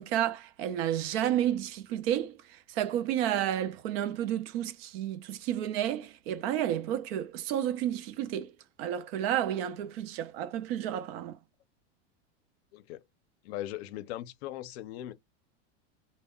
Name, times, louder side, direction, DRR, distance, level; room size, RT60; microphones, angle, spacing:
voice 1, 0.0-2.4 2.7-8.5 8.8-11.4, right 11 dB, 55° right, 0.6 m, -31 dB
voice 2, 12.7-13.0 13.4-15.1, left 13 dB, 60° left, 0.6 m, -39 dB
2.1 x 2.1 x 3.6 m
supercardioid pair, 150°, 36 cm